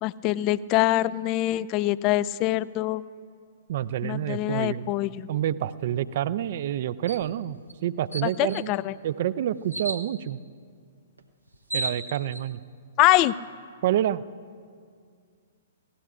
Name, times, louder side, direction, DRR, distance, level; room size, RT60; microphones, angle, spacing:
voice 1, 0.0-3.0 4.0-5.3 8.2-8.9 13.0-13.3, left 16 dB, 30° left, 19 dB, 0.3 m, -24 dB
voice 2, 3.7-4.9 5.3-8.7 9.0-10.4 11.7-12.6 13.8-14.2, right 11 dB, 50° right, 17 dB, 0.5 m, -28 dB
sound 1, 7.1-7.3 7.7-7.8 8.1-8.6 9.7-10.0 11.2-11.3 11.5-12.4, right 2 dB, 85° right, 0.9 m, -33 dB
27.5 x 17.5 x 2.5 m, 2.1 s
figure-of-eight pair, 115°, 0 cm